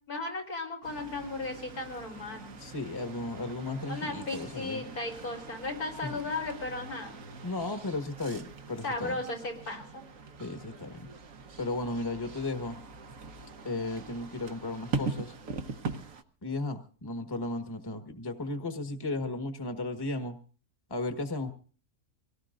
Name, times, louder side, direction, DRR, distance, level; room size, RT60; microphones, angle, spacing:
voice 1, 0.1-2.6 3.9-7.2 8.8-10.0, left 2 dB, 80° left, 2 dB, 4.5 m, -36 dB
sound 1, 0.8-16.2, right 4 dB, 65° right, 1.6 m, -42 dB
voice 2, 2.6-4.8 6.0-6.2 7.4-9.2 10.4-11.1 11.6-12.8 13.6-15.3 16.4-20.4 20.9-21.5, left 2 dB, 15° left, 6 dB, 1.4 m, -35 dB
25.5 x 18.5 x 2.6 m, 0.40 s
omnidirectional pair, 1.6 m